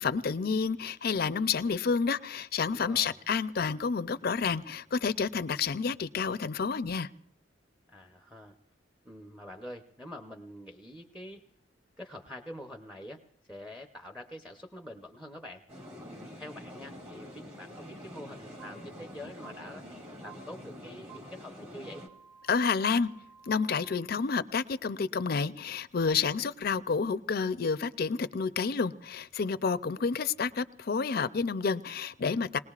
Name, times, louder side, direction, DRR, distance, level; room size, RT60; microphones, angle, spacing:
voice 1, 0.0-7.1 22.5-23.1 23.5-32.6, left 5 dB, 55° left, 14 dB, 0.5 m, -29 dB
voice 2, 2.7-3.2 7.9-8.6 9.0-11.4 12.0-13.2 13.5-15.6 16.0-19.8 20.2-22.0, left 1 dB, 5° right, 4 dB, 0.7 m, -46 dB
sound 1, 15.7-22.1, left 1 dB, 35° right, 2.0 m, -46 dB
sound 2, 18.6-18.7 19.4-19.5 20.2-20.3 21.1-21.2 21.8-24.0, right 8 dB, 60° right, 7.4 m, -53 dB
27.5 x 20.0 x 2.4 m, 0.69 s
head